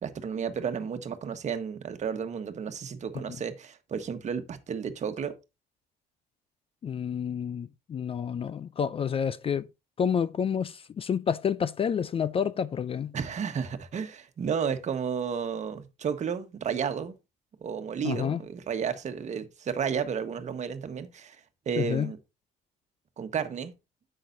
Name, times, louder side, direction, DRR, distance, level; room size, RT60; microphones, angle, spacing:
voice 1, 0.0-5.3 13.1-17.2 17.6-22.2 23.2-23.7, right 7 dB, 45° right, 1.4 m, -32 dB
voice 2, 6.8-9.7 10.0-13.1 18.0-18.4 21.8-22.1, left 7 dB, 35° left, 0.4 m, -29 dB
9.7 x 7.7 x 2.7 m
cardioid pair, 110°, 17 cm